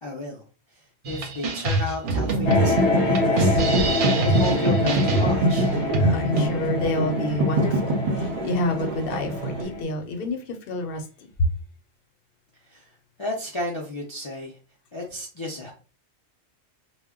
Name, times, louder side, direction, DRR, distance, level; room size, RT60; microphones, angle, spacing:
voice 1, 0.0-5.7 12.6-14.6 14.9-15.7, left 2 dB, 40° left, 0.4 m, -34 dB
sound 1, 1.0-6.5, right 2 dB, 55° right, 0.7 m, -25 dB
sound 2, 2.0-9.6, right 2 dB, 85° right, 0.9 m, -25 dB
sound 3, 2.5-9.8, left 3 dB, 85° left, 1.0 m, -27 dB
voice 2, 6.0-11.5, left 2 dB, 60° left, 0.8 m, -28 dB
2.1 x 2.1 x 3.5 m
omnidirectional pair, 1.1 m